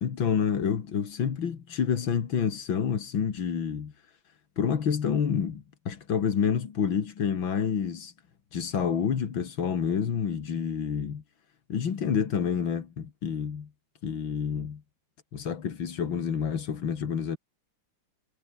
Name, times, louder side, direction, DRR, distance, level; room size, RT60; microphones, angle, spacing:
voice 1, 0.0-3.9 4.6-8.1 8.5-11.2 11.7-13.7 14.0-14.8 15.3-17.4, left 7 dB, 90° left, 2.7 m, -28 dB
omnidirectional pair, 2.1 m